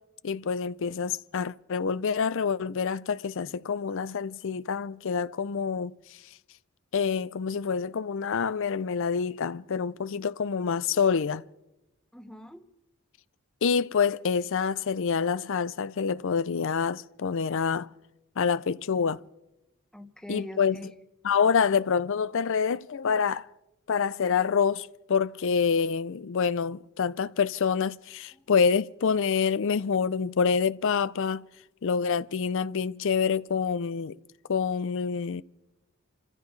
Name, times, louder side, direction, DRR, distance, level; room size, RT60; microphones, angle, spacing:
voice 1, 0.2-5.9 6.9-11.4 13.6-17.9 18.4-19.2 20.3-20.8 21.2-23.5 23.9-31.4 31.8-34.2 34.5-35.4, left 6 dB, 60° left, 0.5 m, -27 dB
voice 2, 12.1-12.6 19.9-20.9 28.3-28.5, left 1 dB, 5° left, 1.0 m, -43 dB
28.5 x 15.0 x 3.2 m
head